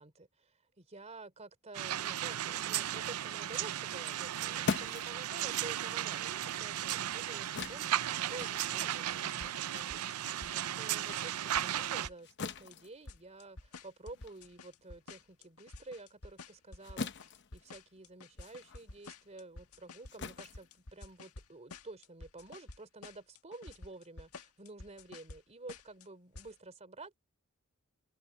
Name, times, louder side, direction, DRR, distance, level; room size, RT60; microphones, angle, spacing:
voice 1, 0.0-27.1, right 2 dB, 30° right, 3.2 m, -50 dB
sound 1, 1.7-12.1, right 11 dB, 85° right, 0.5 m, -35 dB
sound 2, 4.1-10.9 11.3-21.5, left 4 dB, 55° left, 0.9 m, -44 dB
sound 3, 8.4-8.8 9.1-10.8 11.1-12.7 13.1-21.4 21.7-22.8 23.0-25.4 25.7-26.1 26.3-26.5, left 3 dB, 85° left, 1.6 m, -50 dB
open air
head